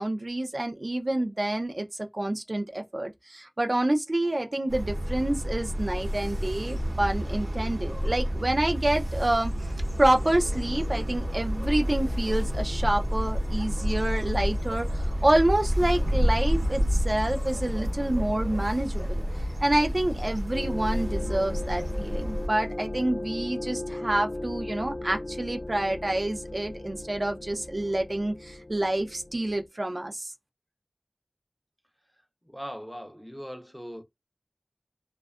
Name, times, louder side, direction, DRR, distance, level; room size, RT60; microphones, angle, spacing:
voice 1, 0.0-1.9 2.1-9.7 10.0-19.2 19.6-30.3, right 1 dB, 50° right, 0.4 m, -28 dB
sound 1, 4.7-22.5, equal, 85° right, 0.9 m, -29 dB
sound 2, 5.6-22.9, left 1 dB, 30° left, 0.9 m, -45 dB
sound 3, 20.5-29.7, left 1 dB, 60° left, 0.3 m, -37 dB
voice 2, 32.5-34.0, equal, 5° left, 0.5 m, -40 dB
2.5 x 2.2 x 2.4 m
wide cardioid pair, 50°, 0 cm